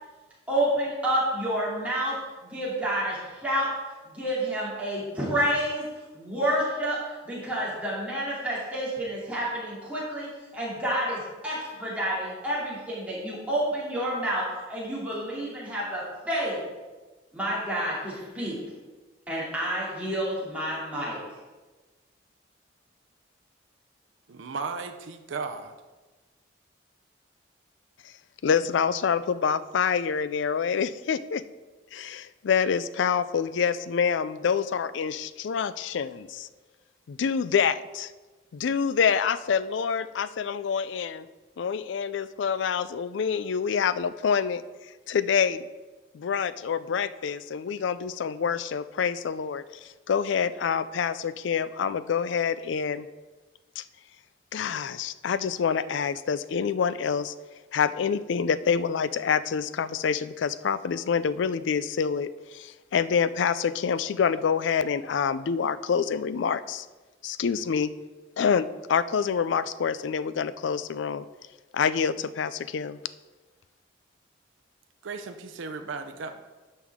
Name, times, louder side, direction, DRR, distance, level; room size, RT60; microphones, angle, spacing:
voice 1, 0.5-3.7 4.1-5.9 6.1-16.6 17.3-18.6 19.3-21.2, right 1 dB, 5° right, -8 dB, 2.6 m, -29 dB
voice 2, 24.3-25.7 75.0-76.4, right 4 dB, 85° right, 6 dB, 0.6 m, -35 dB
voice 3, 28.4-31.4 31.9-36.5 37.1-38.1 38.5-41.3 41.6-44.6 45.1-45.6 46.1-53.1 53.8-53.9 54.5-57.3 57.7-66.9 67.2-67.9 68.4-71.3 71.7-73.0, left 6 dB, 75° left, 15 dB, 0.4 m, -27 dB
11.0 x 5.6 x 3.6 m, 1.2 s
head